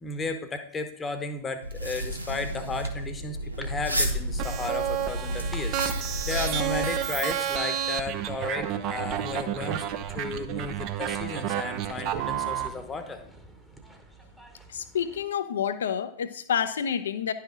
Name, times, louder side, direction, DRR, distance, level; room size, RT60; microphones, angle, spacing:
voice 1, 0.0-13.2, left 3 dB, 15° left, 8 dB, 1.0 m, -34 dB
sound 1, 1.6-7.0, equal, 85° right, 0.9 m, -31 dB
sound 2, 3.6-15.3, right 1 dB, 5° right, 1.1 m, -49 dB
sound 3, 4.4-12.7, right 10 dB, 40° right, 0.6 m, -30 dB
voice 2, 14.7-17.3, left 8 dB, 65° left, 11 dB, 0.6 m, -28 dB
10.5 x 5.7 x 3.7 m, 0.68 s
figure-of-eight pair, 90°, 0 cm